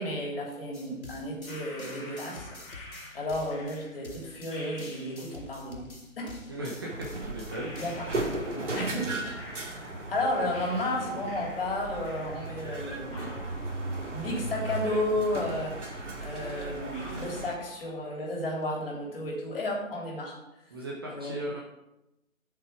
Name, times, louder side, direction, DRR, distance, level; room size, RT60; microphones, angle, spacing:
voice 1, 0.0-2.6 3.1-5.9 6.2-6.3 7.8-8.1 8.5-13.5 13.8-20.4 21.1-21.4, left 1 dB, 40° left, -1 dB, 3.3 m, -33 dB
sound 1, 0.7-8.4, left 2 dB, 85° left, 2.7 m, -48 dB
sound 2, 1.4-5.6 6.7-6.8 7.5-10.2 10.5-12.8 13.1-15.2 15.5-15.6 16.2-16.3 16.9-18.2 18.5-19.0, left 2 dB, 25° left, 3.3 m, -49 dB
voice 2, 6.5-7.8 20.7-21.6, right 1 dB, 20° right, -3 dB, 0.8 m, -37 dB
sound 3, 6.9-17.6, right 2 dB, 60° right, 2.3 m, -36 dB
11.5 x 6.6 x 4.8 m, 0.91 s
figure-of-eight pair, 150°, 41 cm